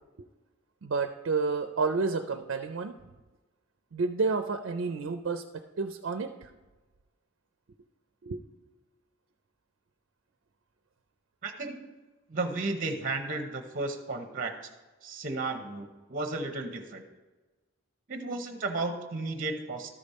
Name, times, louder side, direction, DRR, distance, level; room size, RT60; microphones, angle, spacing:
voice 1, 0.8-3.0 3.9-6.5 8.2-8.4, right 4 dB, 70° right, 7 dB, 0.5 m, -30 dB
voice 2, 11.4-11.9 12.3-14.5 15.0-17.0 18.1-19.9, right 3 dB, 40° right, 6 dB, 0.8 m, -33 dB
13.0 x 5.2 x 4.2 m, 1.2 s
head